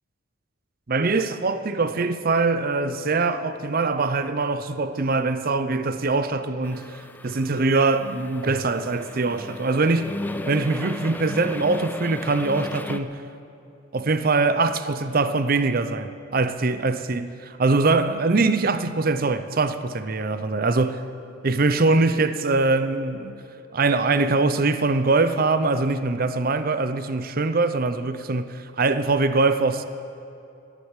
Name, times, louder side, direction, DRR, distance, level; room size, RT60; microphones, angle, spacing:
voice 1, 0.9-6.9 7.2-10.1 10.5-13.2 13.9-21.0 21.4-23.4 23.7-29.8, right 3 dB, 45° right, 0.6 m, -23 dB
sound 1, 6.6-13.0, left 1 dB, 10° left, 0.4 m, -35 dB
13.0 x 10.5 x 9.0 m
head